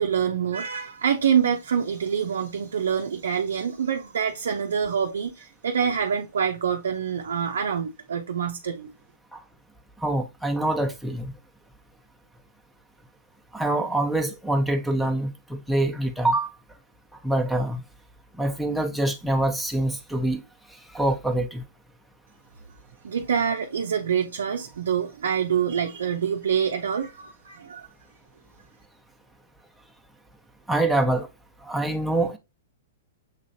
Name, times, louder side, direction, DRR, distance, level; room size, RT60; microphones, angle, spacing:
voice 1, 0.0-8.9 23.0-27.9, right 7 dB, 75° right, 0.6 m, -26 dB
voice 2, 10.0-11.3 13.5-16.5 17.2-17.8 18.4-20.4 20.9-21.6 30.7-31.3 31.6-32.4, right 1 dB, ahead, 0.9 m, -25 dB
6.5 x 3.0 x 2.7 m
hypercardioid pair, 120°, 0 cm